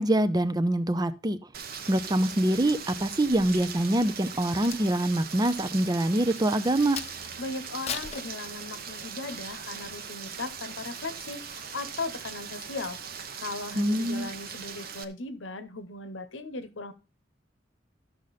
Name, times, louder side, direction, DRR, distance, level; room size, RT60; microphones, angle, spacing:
voice 1, 0.0-1.4 1.9-7.0 13.8-14.3, right 1 dB, 20° right, 0.6 m, -25 dB
Rain, 1.5-15.0, right 6 dB, 50° right, 1.0 m, -40 dB
Crack, 4.3-7.3 7.8-9.0 9.5-9.7, left 7 dB, 35° left, 0.8 m, -40 dB
voice 2, 7.4-16.9, left 3 dB, 80° left, 1.0 m, -38 dB
13.0 x 6.4 x 4.2 m
head